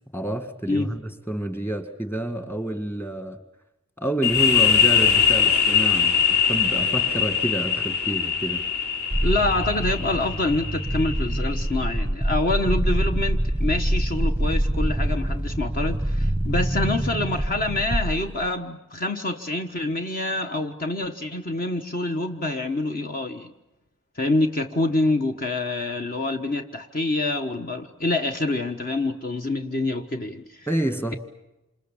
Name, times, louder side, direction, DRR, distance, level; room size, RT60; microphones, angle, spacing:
voice 1, 0.1-3.4 4.0-8.6 30.7-31.2, right 1 dB, 10° left, 7 dB, 1.8 m, -28 dB
sound 1, 4.2-11.7, left 7 dB, 70° left, 4.2 m, -22 dB
sound 2, 9.1-18.5, right 1 dB, 10° right, 0.9 m, -25 dB
voice 2, 9.2-23.5 24.2-30.7, left 2 dB, 40° left, 5 dB, 1.3 m, -26 dB
27.5 x 27.5 x 7.2 m, 0.98 s
head